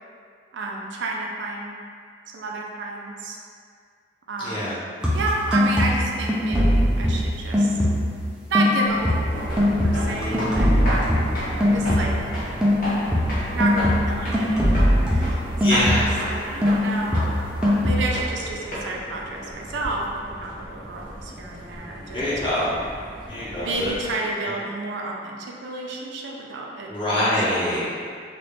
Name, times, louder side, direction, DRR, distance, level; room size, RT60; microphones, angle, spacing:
voice 1, 0.5-1.8 2.3-3.4 4.3-4.8 5.1-7.8 8.5-12.1 13.5-15.4 15.7-17.2 17.8-22.2 22.5-22.8 23.6-27.8, right 2 dB, 85° right, -1 dB, 0.4 m, -30 dB
voice 2, 4.4-4.8 15.5-16.1 22.1-22.7 23.3-23.9 26.9-27.8, left 1 dB, 30° left, -12 dB, 1.1 m, -24 dB
sound 1, 5.0-8.2 8.5-12.3 12.6-16.3 16.6-18.0, left 1 dB, 5° right, 0.4 m, -21 dB
sound 2, 8.9-24.1, equal, 50° left, 1.1 m, -33 dB
3.4 x 2.4 x 3.0 m, 2.2 s
head